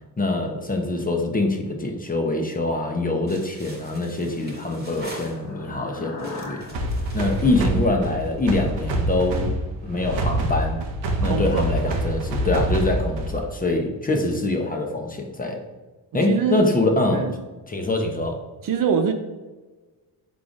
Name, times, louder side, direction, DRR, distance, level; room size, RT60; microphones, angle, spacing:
voice 1, 0.2-6.6 7.1-9.5 9.8-10.8 11.2-15.6 16.1-17.3 17.7-18.4, left 2 dB, 20° left, 2 dB, 0.7 m, -24 dB
sound 1, 3.3-5.8 6.2-8.4, right 1 dB, 20° right, 1.2 m, -43 dB
sound 2, 4.1-8.5, left 3 dB, 40° left, 1.0 m, -42 dB
sound 3, 6.7-13.5, right 1 dB, 75° right, 0.8 m, -26 dB
voice 2, 11.2-11.6 16.2-16.7 17.1-17.4 18.6-19.1, right 6 dB, 50° right, 6 dB, 0.5 m, -23 dB
4.8 x 3.7 x 2.5 m, 1.2 s
supercardioid pair, 70°, 45 cm